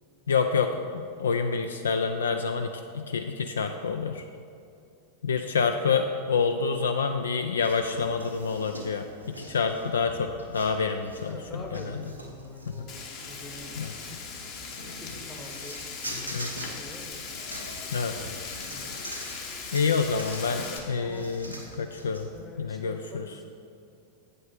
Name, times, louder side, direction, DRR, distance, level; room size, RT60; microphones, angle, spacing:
voice 1, 0.3-4.2 5.2-12.0 12.7-12.9 13.8-13.9 16.3-16.5 17.9-18.2 19.7-22.3 22.6-23.3, left 5 dB, 70° left, 6 dB, 0.3 m, -28 dB
sound 1, 7.6-22.4, right 1 dB, 85° right, 1.0 m, -44 dB
voice 2, 11.2-14.2 14.9-17.2 18.7-18.9 21.0-21.3 22.3-23.5, left 2 dB, 10° left, 1 dB, 0.9 m, -45 dB
Frying (food), 12.9-20.8, left 5 dB, 40° left, 1.1 m, -39 dB
8.1 x 7.7 x 3.8 m, 2.5 s
figure-of-eight pair, 90°, 0 cm